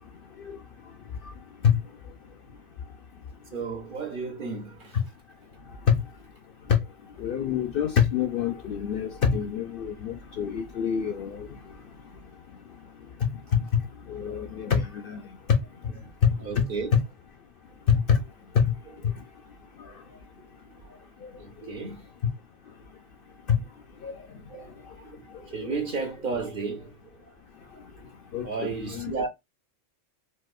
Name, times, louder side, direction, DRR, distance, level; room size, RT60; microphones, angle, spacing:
voice 1, 3.5-5.0 16.4-16.9 20.1-20.2 20.8-21.0 21.4-22.0 24.5-24.7 25.0-27.8 28.4-29.3, right 4 dB, 50° right, 0.8 m, -34 dB
voice 2, 7.2-11.5 14.1-15.2 18.1-18.2 18.6-18.7 24.0-24.1 28.3-29.1, left 7 dB, 60° left, 0.6 m, -27 dB
4.2 x 2.2 x 2.2 m
omnidirectional pair, 1.3 m